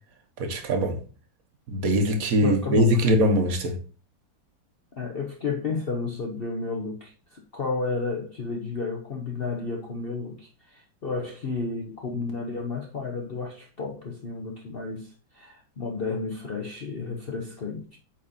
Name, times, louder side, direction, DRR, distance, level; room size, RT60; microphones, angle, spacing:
voice 1, 0.4-1.0 1.7-3.8, equal, 55° right, 1.3 m, -22 dB
voice 2, 2.4-3.0 5.0-18.0, left 4 dB, 60° left, 0.6 m, -32 dB
8.5 x 4.2 x 2.7 m
omnidirectional pair, 2.1 m